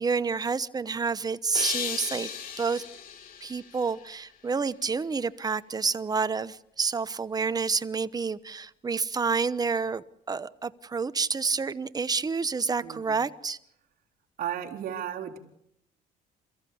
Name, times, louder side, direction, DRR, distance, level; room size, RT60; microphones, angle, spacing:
voice 1, 0.0-2.3 2.6-2.8 3.4-13.6, right 5 dB, 20° right, 15 dB, 1.0 m, -29 dB
sound 1, 1.5-4.7, left 7 dB, 60° left, 4.4 m, -37 dB
voice 2, 12.8-13.2 14.4-15.4, right 10 dB, 60° right, 0 dB, 3.9 m, -34 dB
28.5 x 15.0 x 8.6 m, 0.76 s
cardioid pair, 110°, 17 cm